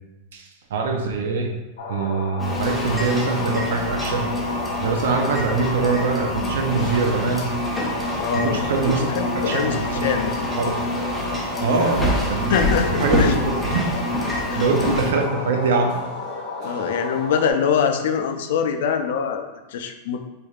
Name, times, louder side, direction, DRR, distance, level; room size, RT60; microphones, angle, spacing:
voice 1, 0.3-1.6 1.9-4.3 4.8-7.5 8.3-9.0 9.4-10.2 10.6-10.8 11.6-12.6 12.9-13.3 13.6-13.9 14.5-16.0, right 4 dB, 75° right, 3 dB, 0.6 m, -23 dB
sound 1, 1.8-17.5, left 3 dB, 85° left, 0.9 m, -32 dB
sound 2, 2.4-15.1, left 1 dB, 5° left, 0.4 m, -26 dB
sound 3, 2.6-18.4, right 1 dB, 30° right, 0.9 m, -44 dB
voice 2, 8.2-8.6 8.9-10.3 11.8-12.0 12.5-13.3 14.5-14.9 16.6-20.2, left 7 dB, 65° left, 7 dB, 0.4 m, -24 dB
4.2 x 3.3 x 2.4 m, 1.0 s
supercardioid pair, 175°, 0 cm